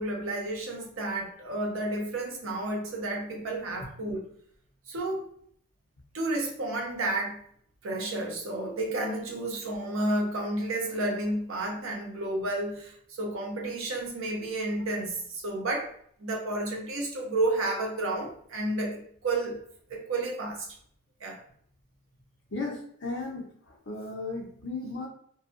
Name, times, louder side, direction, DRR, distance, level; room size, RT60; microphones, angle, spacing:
voice 1, 0.0-4.3 4.9-5.3 6.1-7.4 7.8-15.9 16.2-19.6 19.9-20.7 21.2-21.4, right 2 dB, 65° right, 0 dB, 0.6 m, -31 dB
voice 2, 22.5-23.5 23.9-25.1, left 3 dB, 55° left, 0 dB, 0.7 m, -35 dB
2.6 x 2.2 x 2.5 m, 0.65 s
head